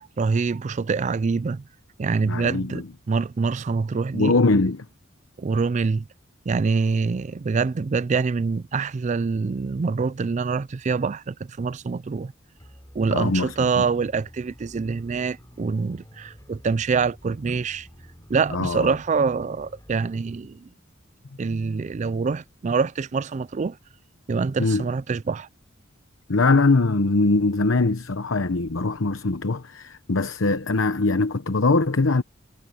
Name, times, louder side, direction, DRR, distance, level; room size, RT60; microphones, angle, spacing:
voice 1, 0.2-1.6 2.0-4.4 5.4-6.1 6.5-12.3 12.9-17.9 18.3-20.7 21.4-23.8 24.3-25.5, right 4 dB, 35° right, 0.4 m, -25 dB
voice 2, 2.2-2.8 4.1-4.9 13.1-13.8 18.5-18.9 24.6-24.9 26.3-32.2, left 3 dB, 80° left, 0.9 m, -22 dB
sound 1, 12.6-20.2, equal, 20° left, 8.0 m, -49 dB
head